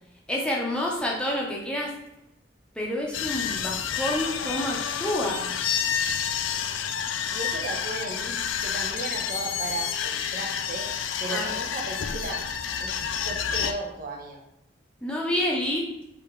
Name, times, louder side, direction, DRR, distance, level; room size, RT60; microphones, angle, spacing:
voice 1, 0.3-1.9 2.7-5.5 11.3-11.6 15.0-15.9, left 1 dB, 5° left, -3 dB, 0.7 m, -28 dB
sound 1, 3.1-13.7, left 8 dB, 85° left, 0.4 m, -29 dB
voice 2, 7.3-10.9 11.2-12.4 12.8-12.9 13.2-14.4, right 2 dB, 50° right, 0 dB, 0.7 m, -35 dB
3.4 x 3.4 x 4.4 m, 0.88 s
head